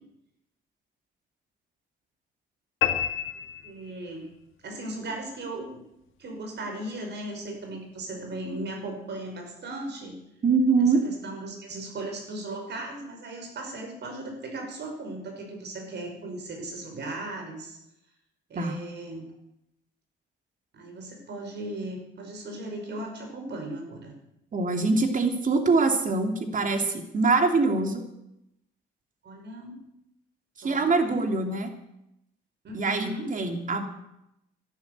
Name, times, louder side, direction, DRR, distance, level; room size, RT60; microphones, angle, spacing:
sound 1, 2.8-4.3, left 11 dB, 85° left, 1.7 m, -29 dB
voice 1, 3.6-4.2 4.6-5.8 6.2-10.2 10.8-17.8 18.5-19.3 20.7-24.1 29.2-29.9 30.6-31.2 32.6-33.3, right 2 dB, 60° right, 3 dB, 5.5 m, -37 dB
voice 2, 10.4-11.1 18.5-18.8 24.5-28.0 30.6-31.7 32.7-33.8, right 3 dB, 40° right, 5 dB, 3.0 m, -24 dB
13.0 x 11.5 x 9.4 m, 0.84 s
cardioid pair, 90°, 20 cm